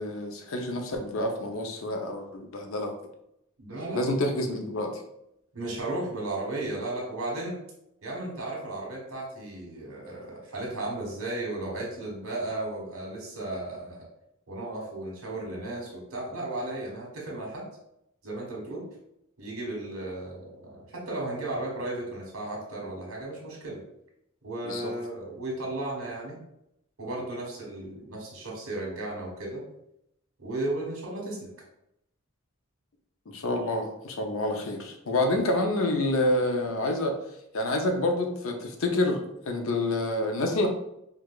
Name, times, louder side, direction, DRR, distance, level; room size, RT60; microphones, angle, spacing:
voice 1, 0.0-2.9 3.9-5.0 24.6-24.9 33.3-37.2 37.5-40.7, left 1 dB, 70° left, 4 dB, 0.6 m, -28 dB
voice 2, 3.6-4.0 5.5-7.6 8.0-14.1 14.5-17.7 18.2-18.9 19.4-23.8 24.4-26.4 27.0-29.6 30.4-31.5, right 2 dB, 80° right, -2 dB, 1.2 m, -35 dB
4.5 x 2.4 x 2.3 m, 0.82 s
head